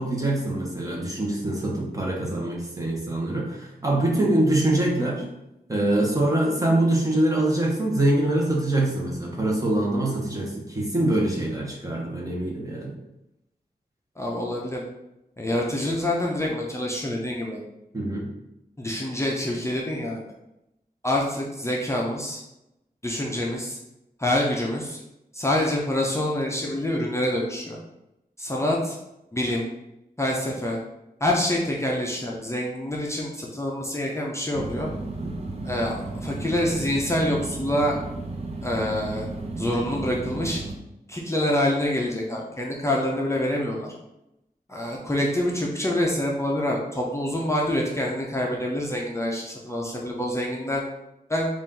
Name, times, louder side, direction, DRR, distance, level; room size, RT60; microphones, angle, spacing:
voice 1, 0.0-5.2 5.7-12.9 17.9-18.3 35.2-35.5, right 1 dB, 20° right, -3 dB, 1.1 m, -24 dB
voice 2, 14.2-14.8 15.4-17.6 18.8-20.2 21.0-22.4 23.0-23.8 24.2-25.0 25.3-27.8 28.4-29.0 29.3-29.6 30.2-30.8 31.2-34.9 35.6-38.0 38.6-39.3 39.6-40.6 41.1-43.9 44.7-50.8 51.3-51.5, left 1 dB, 20° left, -2 dB, 0.6 m, -26 dB
sound 1, 34.5-40.7, right 2 dB, 40° right, 0.6 m, -34 dB
4.1 x 2.5 x 3.8 m, 0.89 s
wide cardioid pair, 100°, 16 cm